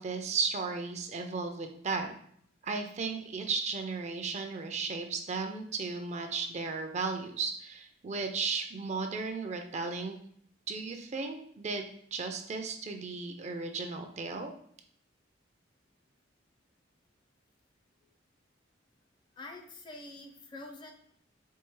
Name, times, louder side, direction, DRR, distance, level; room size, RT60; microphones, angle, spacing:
voice 1, 0.0-2.1 2.6-10.2 10.7-14.5, right 4 dB, 35° right, 5 dB, 0.4 m, -35 dB
voice 2, 19.4-20.9, left 2 dB, 25° left, 3 dB, 0.5 m, -46 dB
4.5 x 2.7 x 3.1 m, 0.65 s
head